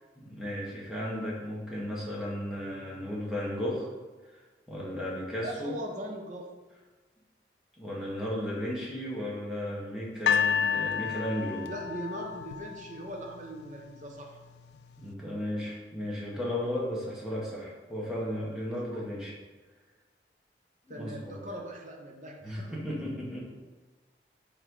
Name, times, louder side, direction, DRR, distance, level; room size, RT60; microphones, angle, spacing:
voice 1, 0.2-3.9 4.7-5.7 7.8-11.7 15.0-19.3 20.9-21.4 22.4-23.4, equal, 5° right, -6 dB, 1.4 m, -34 dB
voice 2, 5.4-6.4 11.0-11.1 11.6-14.4 18.9-19.0 20.9-22.7, right 1 dB, 45° right, 0 dB, 0.8 m, -40 dB
sound 1, 10.3-13.4 14.2-14.3, left 7 dB, 70° left, 0.3 m, -30 dB
5.8 x 3.4 x 4.7 m, 1.3 s
head